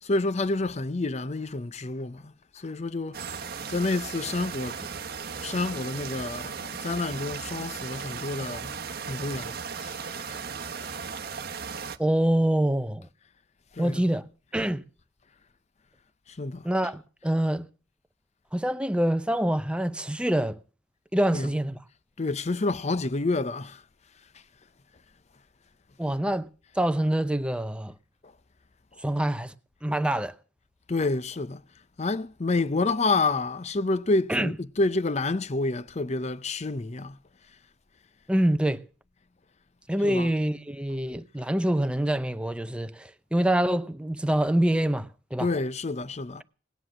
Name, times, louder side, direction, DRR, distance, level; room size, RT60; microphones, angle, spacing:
voice 1, 0.0-4.9 5.4-8.8 9.0-10.5 13.7-14.0 16.3-16.7 21.3-21.5 22.2-23.8 28.2-28.3 30.9-31.6 32.0-37.2 40.0-40.3 45.4-46.4, left 3 dB, 35° left, 0.6 m, -29 dB
sound 1, 3.1-12.0, right 6 dB, 55° right, 1.0 m, -36 dB
voice 2, 12.0-13.1 13.8-14.2 14.5-14.8 16.6-17.7 18.5-20.6 21.1-21.8 26.0-26.5 26.8-27.9 29.0-29.5 29.8-30.3 34.3-34.5 38.3-38.8 39.9-45.5, right 1 dB, 5° right, 0.7 m, -25 dB
19.0 x 10.0 x 6.2 m
head